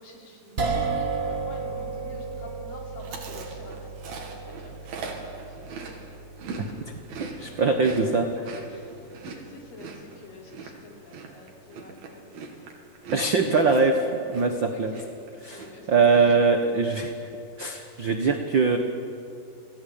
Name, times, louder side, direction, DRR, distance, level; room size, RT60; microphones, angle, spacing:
voice 1, 0.0-3.8 4.1-4.3 4.6-5.7 8.7-12.7 14.0-15.1 15.4-15.9 16.2-16.3, left 2 dB, 70° left, -1 dB, 5.4 m, -48 dB
sound 1, 0.6-12.9, right 4 dB, 50° right, 0.7 m, -36 dB
Chewing mastication, 3.0-6.7 6.9-14.7 14.9-15.3 15.5-16.2, right 4 dB, 85° right, 4.4 m, -40 dB
voice 2, 7.2-8.5 13.1-14.9 15.4-17.3 17.6-18.8, right 4 dB, 65° right, 5 dB, 1.1 m, -22 dB
28.0 x 18.5 x 8.6 m, 2.7 s
omnidirectional pair, 4.2 m